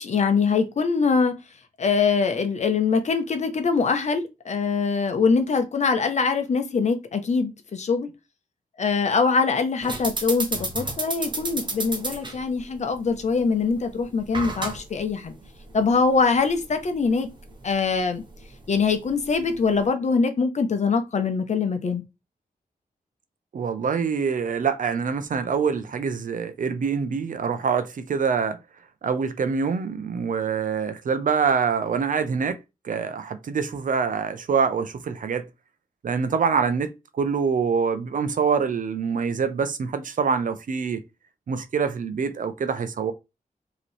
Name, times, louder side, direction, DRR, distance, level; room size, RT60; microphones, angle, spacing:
voice 1, 0.0-1.3 1.8-8.1 8.8-15.3 15.7-17.3 17.6-18.2 18.7-22.0, left 5 dB, 50° left, 0.8 m, -23 dB
sound 1, 9.8-19.9, right 2 dB, 30° right, 0.9 m, -34 dB
voice 2, 23.5-28.6 29.0-32.6 32.8-35.5 36.0-41.0 41.5-43.1, right 6 dB, 60° right, 0.6 m, -25 dB
4.9 x 3.0 x 3.3 m
wide cardioid pair, 175°, 15 cm